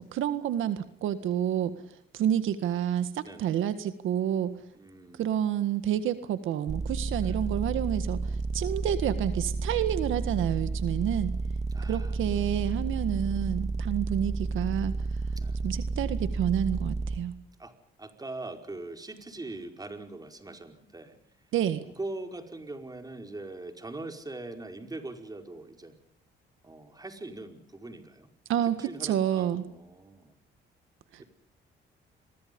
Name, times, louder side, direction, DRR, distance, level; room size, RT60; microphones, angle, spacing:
voice 1, 0.1-1.7 2.1-4.5 5.2-11.3 11.9-14.9 15.6-17.3 21.5-21.8 28.5-29.6 31.1-31.2, right 10 dB, 85° right, 11 dB, 1.8 m, -29 dB
voice 2, 3.2-3.5 4.7-5.3 7.2-7.4 11.7-12.4 15.4-15.7 17.6-21.2 21.9-26.0 26.6-28.3 28.6-30.3 31.2-31.3, right 2 dB, 20° right, 5 dB, 5.0 m, -42 dB
sound 1, 6.7-17.2, right 3 dB, 35° right, 2.0 m, -31 dB
30.0 x 23.0 x 5.4 m, 0.72 s
cardioid pair, 90°, 20 cm